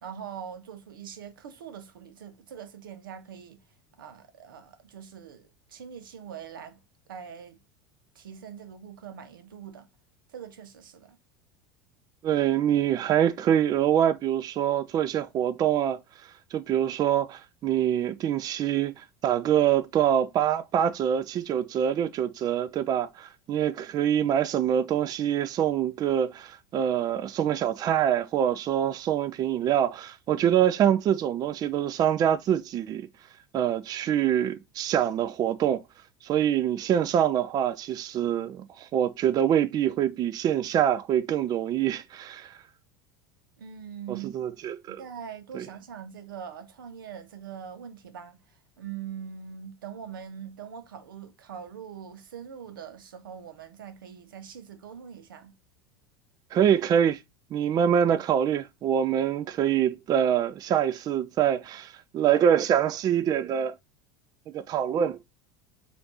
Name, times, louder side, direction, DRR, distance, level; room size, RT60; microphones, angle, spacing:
voice 1, 0.0-3.6 4.0-6.8 7.1-7.6 8.1-9.9 10.3-11.2 43.6-44.3 44.9-55.5, right 8 dB, 80° right, 0.7 m, -42 dB
voice 2, 12.2-33.1 33.5-35.8 36.2-42.6 44.1-45.0 45.5-45.7 56.5-57.2 57.5-63.7 64.5-65.2, right 10 dB, 35° right, 0.4 m, -25 dB
5.0 x 2.6 x 2.9 m
hypercardioid pair, 85°, 11 cm